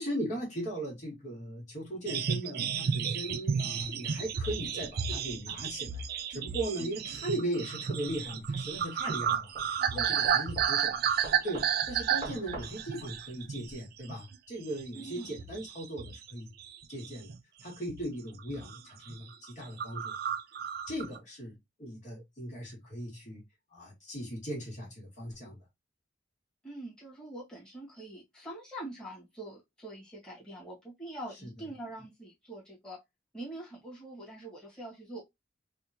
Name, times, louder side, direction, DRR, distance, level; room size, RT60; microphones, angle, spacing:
voice 1, 0.0-11.0 11.4-16.5 16.9-17.3 17.6-20.1 20.9-23.4 23.7-25.6, right 1 dB, 45° left, 1.8 m, -38 dB
sound 1, 2.1-13.8 14.1-14.4 14.8-16.3 16.6-17.4 17.9-18.1 18.4-18.8 19.1-19.2 19.4-19.5 19.8-21.2, right 7 dB, 55° right, 0.4 m, -32 dB
sound 2, 8.1-13.7, right 2 dB, 35° right, 1.0 m, -46 dB
voice 2, 9.9-10.5 14.9-15.3 26.6-33.0 33.3-35.2, right 1 dB, 5° left, 1.6 m, -44 dB
3.4 x 2.6 x 2.8 m
head